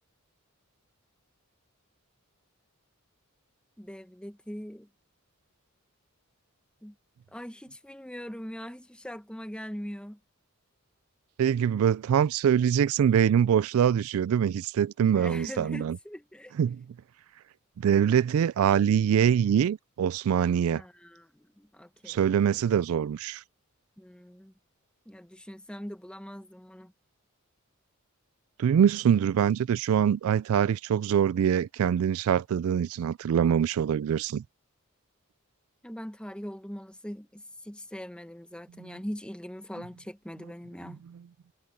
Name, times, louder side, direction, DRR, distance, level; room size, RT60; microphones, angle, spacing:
voice 1, 3.8-4.9 6.8-6.9 7.3-10.2 15.1-16.5 20.7-22.3 24.0-24.5 25.1-26.9 35.8-41.0, equal, 5° left, 1.0 m, -41 dB
voice 2, 11.4-16.0 16.6-16.8 17.8-20.8 22.1-23.4 28.6-34.4, right 8 dB, 70° right, 0.3 m, -24 dB
head